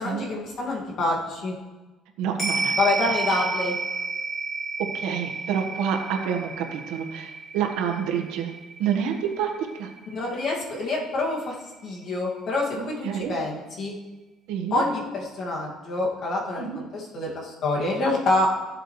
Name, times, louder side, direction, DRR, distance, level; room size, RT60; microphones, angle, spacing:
voice 1, 0.0-1.5 2.8-3.8 10.1-11.5 11.8-12.9 13.3-13.9 14.7-18.5, left 2 dB, 45° left, -3 dB, 2.2 m, -26 dB
voice 2, 2.2-2.8 3.1-3.2 4.8-8.5 8.8-9.9 12.8-13.4 14.5-14.8 16.6-16.8, right 8 dB, 90° right, 3 dB, 1.4 m, -28 dB
sound 1, 2.4-11.0 11.3-11.4, right 3 dB, 20° left, 2.3 m, -32 dB
14.0 x 7.8 x 3.3 m, 1.2 s
cardioid pair, 165°, 0 cm